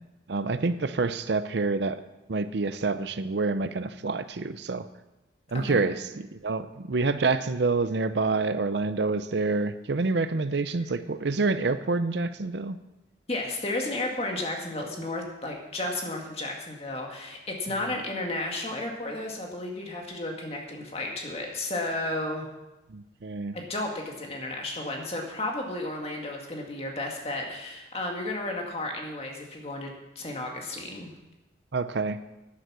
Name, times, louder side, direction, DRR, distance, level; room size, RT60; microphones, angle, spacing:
voice 1, 0.3-2.0 2.3-4.9 5.5-12.8 22.9-23.6 31.7-32.2, right 3 dB, 65° right, 12 dB, 0.6 m, -27 dB
voice 2, 13.3-22.5 23.5-31.1, left 2 dB, 30° left, 1 dB, 2.0 m, -33 dB
11.5 x 9.3 x 6.2 m, 0.99 s
head